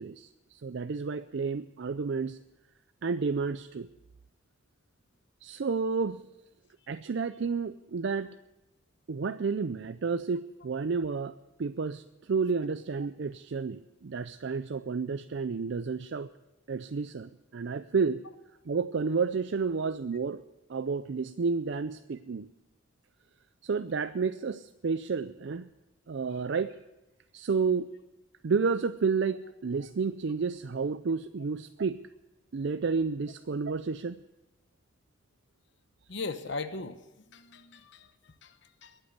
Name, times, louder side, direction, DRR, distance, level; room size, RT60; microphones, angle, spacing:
voice 1, 0.0-2.4 3.0-3.9 5.4-6.2 6.9-8.3 9.1-11.3 11.6-16.3 16.7-18.2 18.7-20.4 20.7-22.5 23.6-25.7 26.1-26.8 27.3-27.9 28.4-32.0 32.5-34.2, right 5 dB, 60° right, 11 dB, 0.4 m, -31 dB
voice 2, 36.1-39.0, left 3 dB, 60° left, 10 dB, 1.0 m, -39 dB
22.0 x 8.1 x 8.1 m, 1.0 s
head